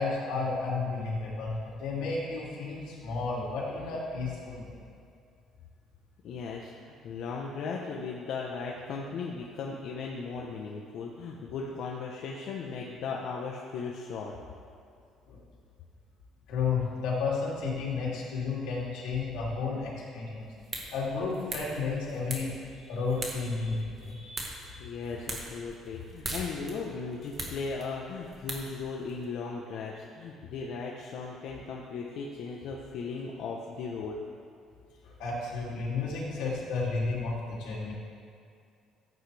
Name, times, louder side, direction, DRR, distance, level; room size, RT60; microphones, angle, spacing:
voice 1, 0.0-4.8 15.3-15.4 16.5-20.5 20.9-22.5 22.8-24.8 35.0-37.9, left 4 dB, 85° left, -5 dB, 2.9 m, -32 dB
voice 2, 6.2-14.3 24.8-34.2, left 4 dB, 60° left, -2 dB, 1.0 m, -37 dB
sound 1, 20.4-29.2, right 2 dB, 30° right, 1.6 m, -42 dB
15.0 x 8.4 x 3.4 m, 2.4 s
cardioid pair, 135°, 0 cm